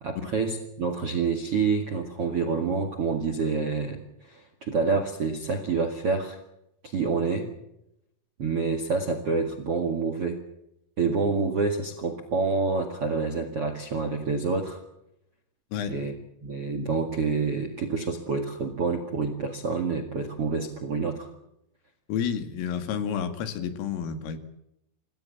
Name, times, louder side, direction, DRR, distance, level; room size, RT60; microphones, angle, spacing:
voice 1, 0.0-6.4 6.8-7.5 8.4-10.4 11.0-14.8 15.9-16.1 16.4-21.3, right 4 dB, 50° right, 7 dB, 1.7 m, -27 dB
voice 2, 22.1-24.4, left 8 dB, 80° left, 9 dB, 4.8 m, -30 dB
27.0 x 17.5 x 7.3 m, 0.83 s
omnidirectional pair, 5.8 m